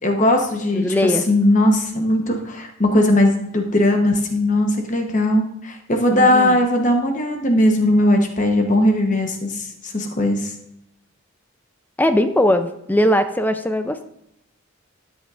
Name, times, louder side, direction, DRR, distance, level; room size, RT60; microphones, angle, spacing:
voice 1, 0.0-10.5, left 1 dB, 35° left, 3 dB, 0.9 m, -18 dB
voice 2, 0.7-1.2 6.1-6.6 12.0-14.1, left 1 dB, 10° left, 9 dB, 0.4 m, -19 dB
13.0 x 8.1 x 2.5 m, 0.81 s
head